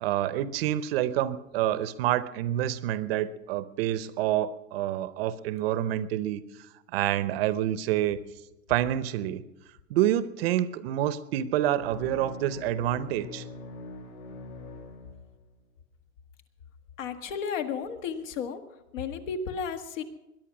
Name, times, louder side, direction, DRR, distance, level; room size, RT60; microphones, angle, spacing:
voice 1, 0.0-6.4 6.9-8.2 8.7-9.4 9.9-13.4, right 12 dB, 45° right, 15 dB, 0.7 m, -27 dB
sound 1, 11.8-15.6, left 3 dB, 90° left, 2.6 m, -43 dB
voice 2, 17.0-18.6 18.9-20.0, left 6 dB, 60° left, 8 dB, 1.8 m, -33 dB
21.5 x 11.0 x 6.1 m, 0.99 s
hypercardioid pair, 145°, 42 cm